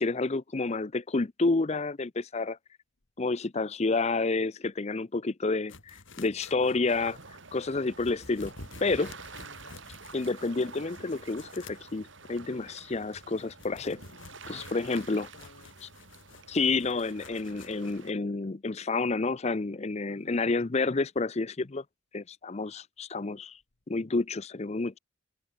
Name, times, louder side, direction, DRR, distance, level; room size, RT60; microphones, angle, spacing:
voice 1, 0.0-2.6 3.2-7.2 7.5-8.5 8.8-9.2 10.1-14.0 14.5-15.3 15.8-15.9 16.5-21.8 22.1-23.6 23.9-25.0, left 3 dB, 30° left, 0.6 m, -29 dB
sound 1, 5.7-18.0, left 3 dB, 65° left, 3.5 m, -51 dB
sound 2, 6.9-18.1, right 4 dB, 60° right, 4.3 m, -49 dB
voice 2, 9.3-9.8 14.1-15.9 20.1-20.5, left 2 dB, 80° left, 1.8 m, -55 dB
head